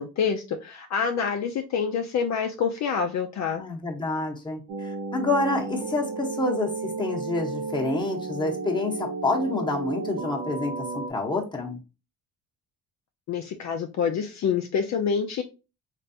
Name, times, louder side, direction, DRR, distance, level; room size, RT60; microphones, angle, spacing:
voice 1, 0.0-3.6 13.3-15.4, left 6 dB, 50° left, 5 dB, 0.5 m, -27 dB
voice 2, 3.6-11.8, left 2 dB, 15° left, 0 dB, 0.9 m, -28 dB
sound 1, 4.7-11.1, right 4 dB, 65° right, 0.7 m, -33 dB
3.2 x 2.5 x 2.6 m, 0.30 s
cardioid pair, 90°, 35 cm